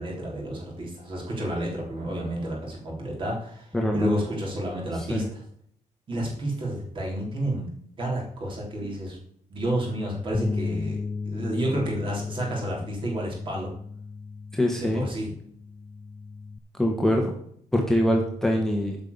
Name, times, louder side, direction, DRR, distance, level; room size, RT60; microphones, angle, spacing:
voice 1, 0.0-5.2 6.1-7.7 8.0-9.2 9.5-13.7 14.8-15.3, right 1 dB, 40° right, -2 dB, 3.7 m, -30 dB
voice 2, 3.7-4.2 4.9-5.3 14.5-15.1 16.7-17.3 17.7-19.0, equal, 5° left, 0 dB, 1.2 m, -24 dB
Bass guitar, 10.3-16.6, left 4 dB, 25° left, 0.4 m, -35 dB
9.1 x 5.7 x 6.8 m, 0.67 s
wide cardioid pair, 160°, 13 cm